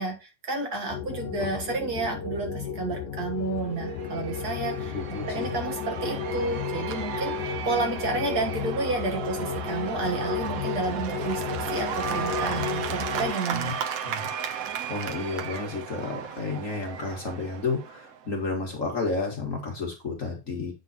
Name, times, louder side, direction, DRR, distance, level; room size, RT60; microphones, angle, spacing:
voice 1, 0.0-5.0 5.3-13.7, right 3 dB, 50° right, 2 dB, 1.8 m, -31 dB
sound 1, 0.9-13.3, left 7 dB, 70° left, 1.1 m, -33 dB
Cheering / Applause / Crowd, 3.5-18.3, right 8 dB, 70° right, 0.8 m, -35 dB
voice 2, 4.9-5.5 13.5-13.7 14.0-14.3 14.9-20.7, left 3 dB, 40° left, 1 dB, 1.5 m, -31 dB
8.0 x 3.9 x 4.0 m, 0.28 s
omnidirectional pair, 2.3 m